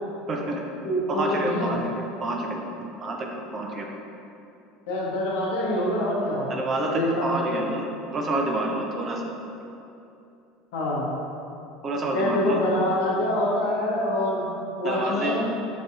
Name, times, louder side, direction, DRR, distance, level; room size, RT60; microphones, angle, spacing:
voice 1, 0.3-0.6 1.1-2.7 3.0-3.9 6.5-7.8 8.1-9.2 11.8-12.6 14.8-15.4, right 1 dB, 40° right, 1 dB, 0.5 m, -28 dB
voice 2, 0.8-1.8 4.9-7.6 10.7-11.1 12.1-14.5 14.8-15.5, left 1 dB, 75° left, -4 dB, 0.7 m, -26 dB
5.0 x 2.6 x 2.3 m, 2.8 s
hypercardioid pair, 85°, 0 cm